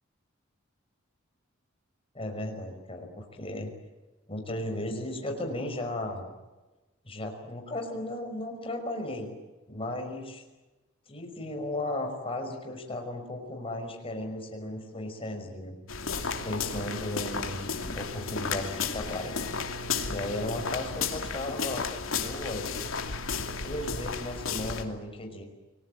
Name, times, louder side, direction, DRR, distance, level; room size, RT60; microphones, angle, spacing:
voice 1, 2.1-3.7 4.3-6.3 7.0-9.3 9.7-10.4 11.1-15.8 16.4-19.4 20.0-21.9 22.1-22.8 23.6-25.4, left 1 dB, 30° left, 3 dB, 5.6 m, -35 dB
sound 1, 15.9-24.8, left 5 dB, 90° left, 2.7 m, -33 dB
28.5 x 20.5 x 8.9 m, 1.1 s
head